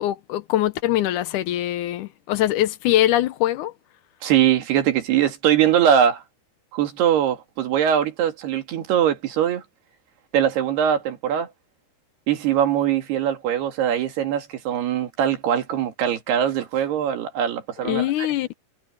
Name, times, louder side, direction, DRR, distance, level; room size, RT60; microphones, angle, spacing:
voice 1, 0.0-3.7 17.8-18.5, left 13 dB, 80° left, 1.8 m, -22 dB
voice 2, 4.2-6.2 6.7-9.6 10.3-11.5 12.3-18.3, right 9 dB, 75° right, 4.3 m, -21 dB
omnidirectional pair, 4.7 m